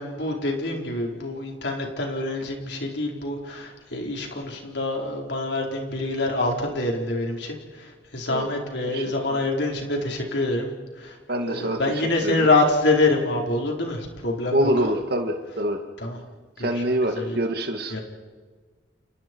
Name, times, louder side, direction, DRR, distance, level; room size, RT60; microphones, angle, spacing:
voice 1, 0.0-11.1 11.5-14.7 16.0-16.2 16.6-17.4 17.9-18.0, left 2 dB, 70° left, 1 dB, 4.7 m, -26 dB
voice 2, 11.3-11.8 12.2-12.5 14.5-15.8 16.6-18.0, equal, 60° right, 4 dB, 2.2 m, -25 dB
30.0 x 28.5 x 4.8 m, 1.4 s
head